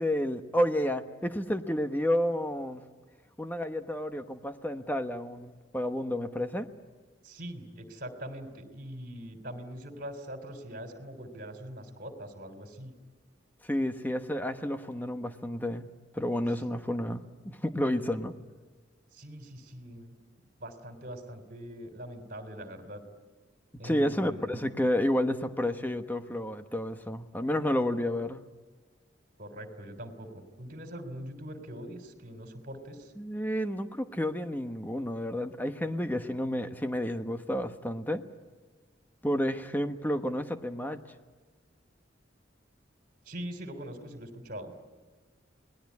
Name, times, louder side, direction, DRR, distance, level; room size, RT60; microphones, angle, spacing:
voice 1, 0.0-2.8 3.4-6.7 13.6-15.9 16.1-18.3 23.8-28.4 33.2-38.2 39.2-41.0, left 1 dB, 10° left, 8 dB, 1.1 m, -30 dB
voice 2, 7.2-12.9 19.1-20.2 20.6-23.0 23.8-24.6 29.4-33.1 43.3-44.7, equal, 50° right, 7 dB, 3.4 m, -42 dB
29.0 x 20.0 x 9.7 m, 1.3 s
head